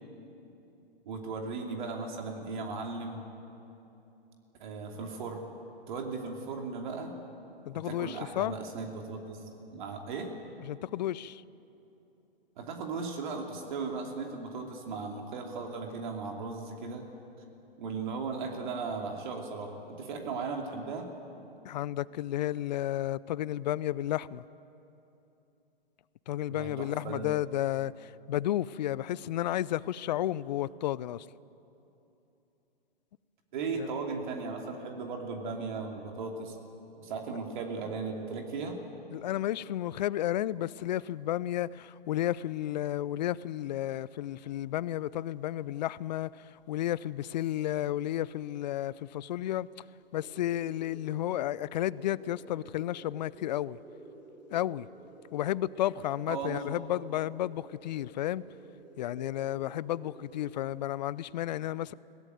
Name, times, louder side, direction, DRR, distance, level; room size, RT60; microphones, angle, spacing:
voice 1, 1.0-3.2 4.6-5.5 5.9-7.1 7.8-9.4 9.7-10.3 12.6-17.1 17.8-21.1 26.5-27.3 33.5-36.6 37.0-38.8 56.3-56.7, right 4 dB, 50° right, 2.9 m, -37 dB
voice 2, 7.7-8.5 10.7-11.4 21.7-24.4 26.3-31.2 33.8-33.9 39.1-46.3 46.7-49.7 50.1-53.8 54.5-54.9 55.3-58.4 59.0-61.9, left 13 dB, 45° left, 0.5 m, -32 dB
sound 1, 50.1-60.7, right 2 dB, 10° right, 4.2 m, -53 dB
22.5 x 18.0 x 9.1 m
hypercardioid pair, 125°, 30 cm